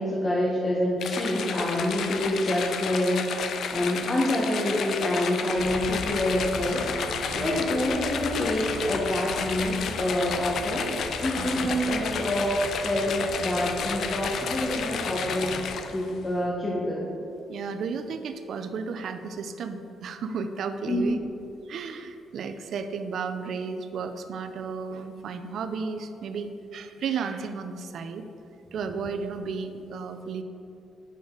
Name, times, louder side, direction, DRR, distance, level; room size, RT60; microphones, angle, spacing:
voice 1, 0.0-15.5 15.9-17.1 20.8-21.1, left 1 dB, 25° left, -5 dB, 1.4 m, -27 dB
sound 1, 1.0-16.1, left 6 dB, 65° left, 0.6 m, -32 dB
sound 2, 5.6-15.7, right 1 dB, 85° right, 1.4 m, -40 dB
voice 2, 7.3-7.7 11.4-11.5 17.5-21.2 21.7-28.3 28.7-30.4, right 5 dB, 65° right, 8 dB, 0.6 m, -33 dB
9.1 x 6.8 x 4.0 m, 2.6 s
cardioid pair, 90°, 0 cm